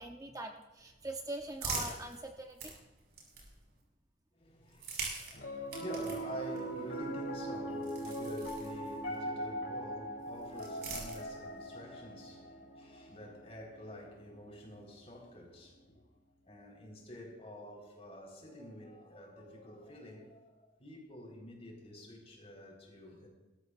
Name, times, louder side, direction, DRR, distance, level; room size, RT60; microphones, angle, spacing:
voice 1, 0.0-2.7, right 1 dB, 20° right, 3 dB, 0.8 m, -43 dB
sound 1, 0.8-3.8 4.6-9.2 10.2-11.7, right 4 dB, 60° right, 5.7 m, -45 dB
voice 2, 4.3-16.0 16.5-23.3, equal, 35° left, -1 dB, 4.3 m, -48 dB
Piano, 5.3-15.7, right 1 dB, 75° left, 3.7 m, -41 dB
22.0 x 13.5 x 2.5 m, 1.1 s
head